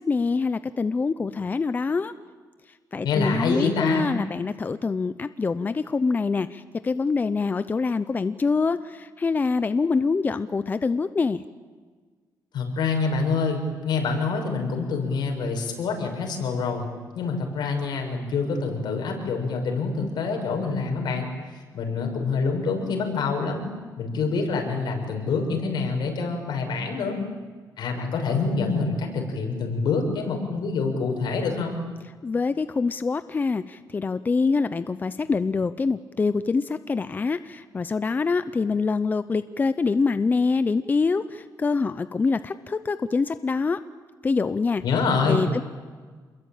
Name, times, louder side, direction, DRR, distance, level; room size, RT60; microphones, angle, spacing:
voice 1, 0.0-2.1 2.9-11.4 32.2-43.8 44.2-44.8 45.2-45.6, left 4 dB, 25° left, 13 dB, 0.7 m, -25 dB
voice 2, 3.0-4.1 12.5-16.9 17.1-21.3 21.7-23.6 24.0-27.2 27.8-31.8 44.8-45.5, left 4 dB, 80° left, 3 dB, 6.5 m, -26 dB
28.5 x 22.0 x 9.0 m, 1.5 s
wide cardioid pair, 155°, 7 cm